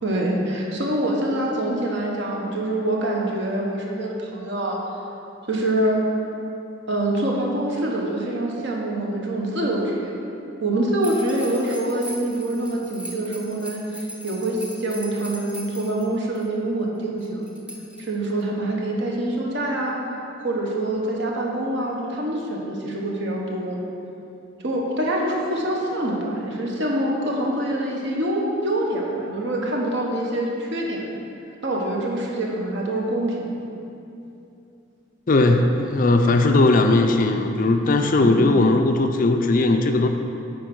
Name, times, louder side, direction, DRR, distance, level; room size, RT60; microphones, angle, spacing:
voice 1, 0.0-4.8 5.5-6.0 6.9-10.1 10.6-17.5 18.0-20.0 20.4-23.8 24.6-31.1 31.6-33.6 38.1-38.6, right 1 dB, 55° right, -2 dB, 1.2 m, -25 dB
sound 1, 11.0-16.4 17.2-18.4, equal, 5° right, 0.6 m, -39 dB
voice 2, 35.3-40.1, left 2 dB, 40° left, 5 dB, 0.4 m, -18 dB
9.3 x 4.5 x 6.2 m, 2.7 s
head